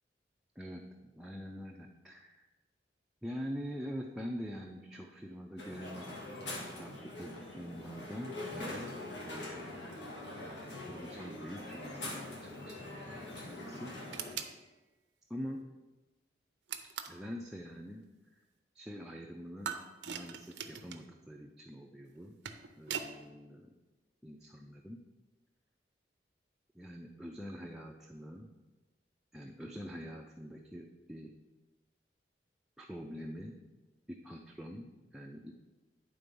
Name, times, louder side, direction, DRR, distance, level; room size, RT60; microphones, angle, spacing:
voice 1, 0.6-2.5 3.2-6.5 6.8-8.9 9.2-10.1 10.5-13.9 15.3-15.6 17.1-18.4 18.7-19.8 20.1-22.4 22.8-23.7 24.2-25.0 26.7-28.5 29.3-31.3 32.8-33.6 34.1-35.5, equal, 5° right, -1 dB, 0.4 m, -45 dB
Crowd, 5.6-14.3, left 1 dB, 80° left, 1.7 m, -43 dB
sound 1, 14.1-14.6 16.7-17.2 19.6-21.0 22.2-23.1, right 7 dB, 80° right, 0.6 m, -41 dB
9.6 x 3.8 x 5.3 m, 1.1 s
head